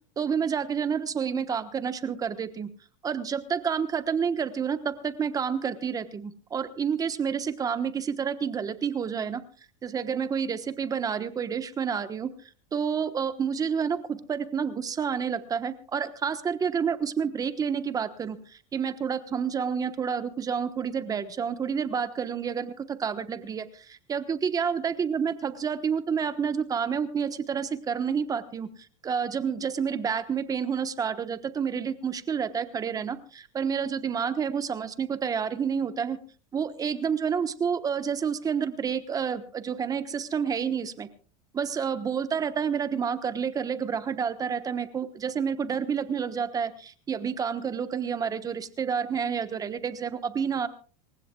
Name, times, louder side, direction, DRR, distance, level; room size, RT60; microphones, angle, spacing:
voice 1, 0.2-2.7 3.0-9.4 9.8-12.3 12.7-28.7 29.0-36.2 36.5-41.1 41.5-50.7, right 7 dB, 20° right, 11 dB, 1.1 m, -29 dB
26.5 x 15.5 x 2.3 m, 0.39 s
supercardioid pair, 135°, 16 cm